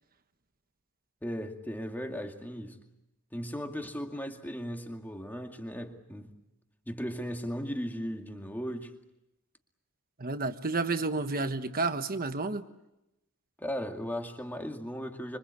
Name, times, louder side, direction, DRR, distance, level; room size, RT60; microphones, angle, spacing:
voice 1, 1.2-2.8 3.3-6.3 6.9-9.0 13.6-15.4, equal, 10° left, 2.3 m, -37 dB
voice 2, 10.2-12.6, right 3 dB, 40° right, 1.3 m, -30 dB
26.5 x 24.5 x 8.3 m
head